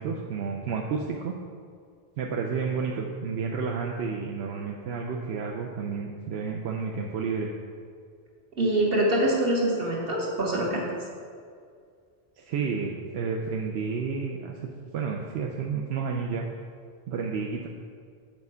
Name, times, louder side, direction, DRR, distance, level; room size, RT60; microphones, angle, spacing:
voice 1, 0.0-1.3 2.2-7.5 12.4-14.7 14.9-16.5 17.1-17.7, right 5 dB, 85° right, 0 dB, 0.9 m, -31 dB
voice 2, 8.6-10.9, right 1 dB, 65° right, -2 dB, 1.6 m, -24 dB
7.3 x 4.7 x 5.5 m, 2.1 s
omnidirectional pair, 1.1 m